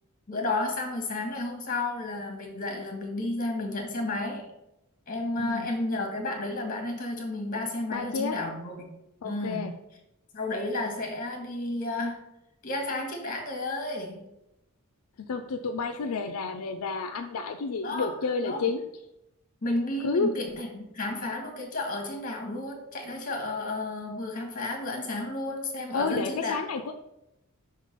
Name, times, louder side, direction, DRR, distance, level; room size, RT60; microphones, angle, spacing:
voice 1, 0.3-4.5 5.1-8.9 9.2-9.8 10.3-12.3 12.6-14.3 17.8-18.1 18.5-18.6 19.6-26.6, left 2 dB, 40° left, 2 dB, 1.5 m, -32 dB
voice 2, 7.9-8.3 9.2-9.7 15.3-18.8 20.0-20.3 25.9-26.9, left 4 dB, 75° left, 7 dB, 0.4 m, -30 dB
5.8 x 3.7 x 5.0 m, 0.89 s
head